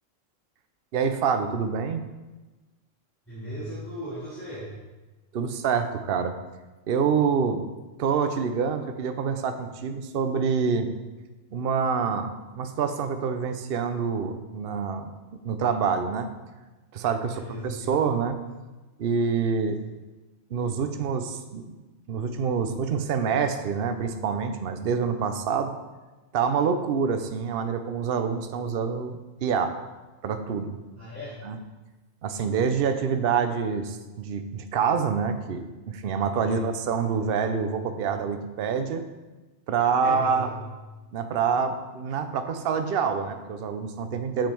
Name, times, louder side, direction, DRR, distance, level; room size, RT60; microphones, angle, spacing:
voice 1, 0.9-2.0 5.3-6.3 6.9-7.6 8.0-10.9 11.5-15.1 15.4-16.3 16.9-17.3 17.6-18.4 19.0-19.8 20.5-21.8 22.1-25.7 26.3-29.7 30.2-30.8 31.4-31.6 32.2-39.0 39.7-40.5 41.1-44.5, right 6 dB, 55° right, 8 dB, 0.8 m, -26 dB
voice 2, 3.2-4.7 17.3-18.0 30.9-31.4 36.4-36.6 39.8-40.6, equal, 10° left, -12 dB, 3.2 m, -37 dB
7.5 x 7.4 x 4.5 m, 1.2 s
omnidirectional pair, 1.3 m